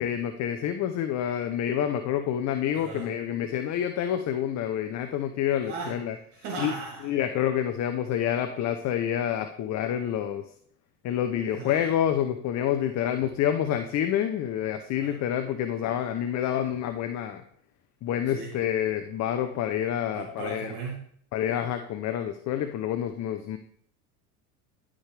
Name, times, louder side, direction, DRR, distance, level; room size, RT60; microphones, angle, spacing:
voice 1, 0.0-6.1 6.6-6.7 7.0-10.5 11.0-17.4 18.0-20.7 21.3-23.6, left 10 dB, 35° left, 8 dB, 0.7 m, -28 dB
voice 2, 2.7-3.1 5.6-7.1 11.5-11.9 14.9-15.2 18.3-18.5 20.1-21.1, right 4 dB, 55° right, -1 dB, 2.5 m, -37 dB
13.0 x 5.0 x 3.3 m, 0.62 s
hypercardioid pair, 80°, 48 cm